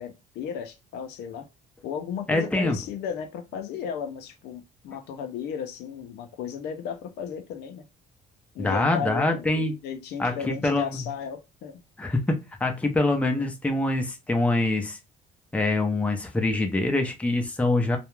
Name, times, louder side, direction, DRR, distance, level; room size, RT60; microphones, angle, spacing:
voice 1, 0.0-1.5 1.8-7.8 8.5-11.8, left 7 dB, 75° left, 0.5 m, -35 dB
voice 2, 2.3-2.8 8.6-9.7 10.2-11.0 12.0-15.0 15.5-18.0, left 2 dB, 10° left, 0.5 m, -25 dB
2.3 x 2.1 x 2.9 m
cardioid pair, 110°, 17 cm